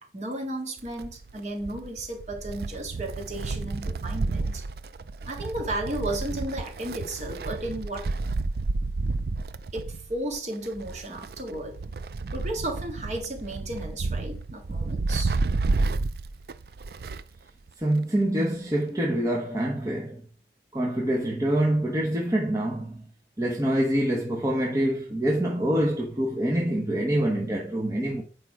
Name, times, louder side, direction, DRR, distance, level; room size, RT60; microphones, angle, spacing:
voice 1, 0.1-4.6 5.2-8.1 9.7-11.8 12.3-15.4, right 1 dB, 40° right, 2.1 m, -34 dB
Wind, 0.8-17.4 17.7-17.8 18.8-18.9, right 3 dB, 60° right, 0.4 m, -31 dB
voice 2, 17.8-20.2 20.7-23.0 23.4-28.2, right 1 dB, 20° right, 1.0 m, -25 dB
8.6 x 5.0 x 4.7 m
head